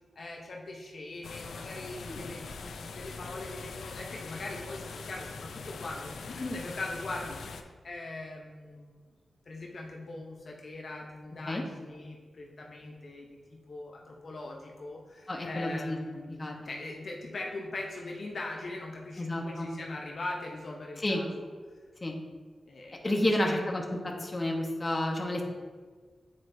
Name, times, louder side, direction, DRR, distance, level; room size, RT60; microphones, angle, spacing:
voice 1, 0.2-9.0 9.4-21.5 22.7-23.6, left 2 dB, 60° left, 0 dB, 0.7 m, -41 dB
sound 1, 1.2-7.6, left 4 dB, 90° left, 0.4 m, -42 dB
voice 2, 15.3-16.0 16.4-16.7 19.2-19.7 21.0-21.2 22.0-22.1 23.0-25.4, left 1 dB, 25° left, 0 dB, 0.9 m, -30 dB
8.4 x 4.2 x 2.7 m, 1.5 s
cardioid pair, 80°, 0 cm